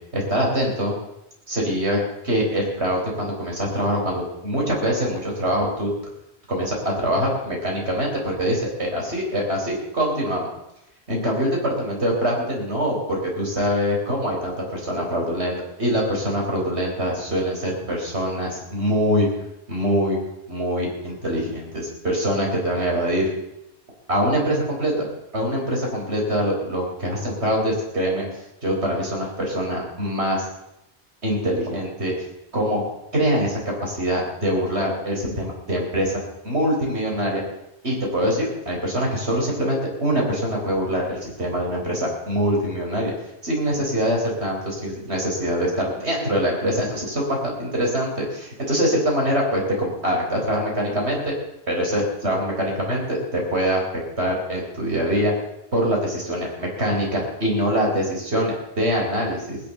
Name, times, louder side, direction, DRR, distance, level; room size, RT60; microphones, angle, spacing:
voice 1, 0.1-1.0 1.5-2.0 2.2-5.9 6.5-10.5 11.1-19.3 19.7-20.2 20.5-23.3 24.1-28.2 28.6-30.5 31.2-32.1 32.5-32.8 33.1-37.4 37.8-43.1 43.4-51.3 51.7-53.8 54.2-55.3 55.7-59.6, equal, 70° right, -1 dB, 4.9 m, -24 dB
18.5 x 10.5 x 6.8 m, 0.87 s
omnidirectional pair, 1.1 m